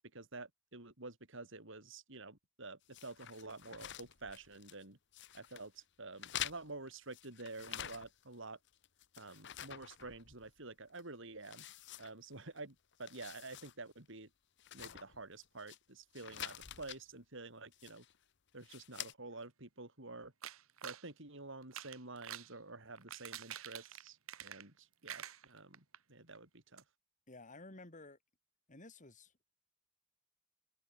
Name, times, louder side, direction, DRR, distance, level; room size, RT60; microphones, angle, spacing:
voice 1, 0.0-5.0 5.3-8.6 9.2-11.7 12.0-14.3 14.7-18.0 18.5-20.3 20.8-26.8, right 3 dB, 65° right, 4.5 m, -49 dB
sound 1, 2.9-4.8 5.1-5.7 6.2-8.3 8.7-10.6 10.9-11.0 11.4-12.6 12.9-13.7 14.1-14.2 14.6-15.8 16.1-17.0 17.7-18.2 18.6-19.1, left 11 dB, 55° left, 1.0 m, -48 dB
sound 2, 20.4-21.1 21.6-22.5 22.9-24.8 25.0-26.0 26.3-26.4 26.8-26.9, right 10 dB, 80° right, 1.6 m, -48 dB
voice 2, 27.3-28.2 28.7-29.3, left 2 dB, 35° left, 3.4 m, -53 dB
head